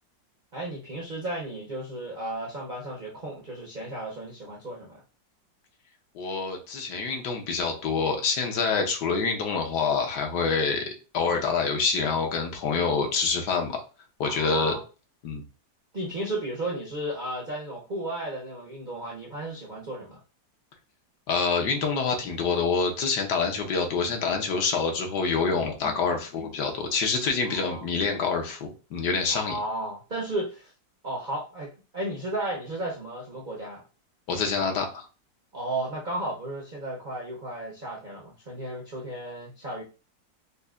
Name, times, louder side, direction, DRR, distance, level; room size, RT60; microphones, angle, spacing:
voice 1, 0.5-5.0 14.2-14.8 15.9-20.2 27.4-27.9 29.3-30.7 31.0-33.8 35.5-39.8, right 1 dB, 65° right, -3 dB, 0.5 m, -34 dB
voice 2, 6.1-10.9 11.1-13.8 14.2-14.7 15.2-15.4 21.3-29.6 34.3-35.0, left 5 dB, 70° left, 3 dB, 1.3 m, -26 dB
5.3 x 2.1 x 2.3 m, 0.34 s
omnidirectional pair, 2.0 m